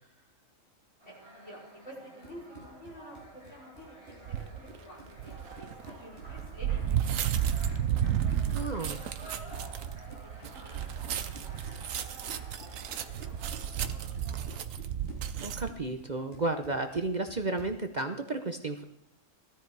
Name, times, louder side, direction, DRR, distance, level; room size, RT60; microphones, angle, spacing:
sound 1, 1.0-14.7, right 1 dB, 15° left, 6.4 m, -51 dB
voice 1, 1.1-8.0 8.6-9.7 10.1-11.7 12.1-12.5 12.8-14.0 14.5-15.0, equal, 65° left, -4 dB, 5.3 m, -52 dB
Run, 2.0-17.8, right 2 dB, 45° left, 4.4 m, -52 dB
sound 2, 4.3-4.6 5.2-15.7, right 9 dB, 80° right, 1.2 m, -33 dB
voice 2, 8.5-8.9 15.4-18.8, right 2 dB, 40° right, 6 dB, 0.9 m, -32 dB
17.0 x 13.0 x 4.7 m, 0.75 s
omnidirectional pair, 1.4 m